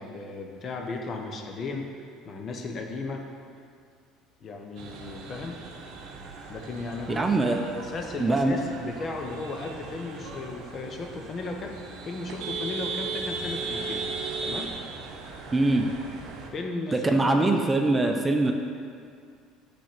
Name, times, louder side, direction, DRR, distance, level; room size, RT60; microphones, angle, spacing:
voice 1, 0.0-3.2 4.4-5.6 6.5-7.2 7.7-11.8 12.0-14.1 14.4-14.8 16.5-17.3, left 3 dB, 40° left, 2 dB, 0.8 m, -35 dB
sound 1, 4.8-16.5, right 4 dB, 60° right, 0.7 m, -37 dB
voice 2, 7.2-7.6 8.2-8.6 15.5-15.9 16.9-18.5, right 2 dB, 20° right, 4 dB, 0.6 m, -22 dB
6.2 x 3.4 x 5.9 m, 2.2 s
hypercardioid pair, 65°, 0 cm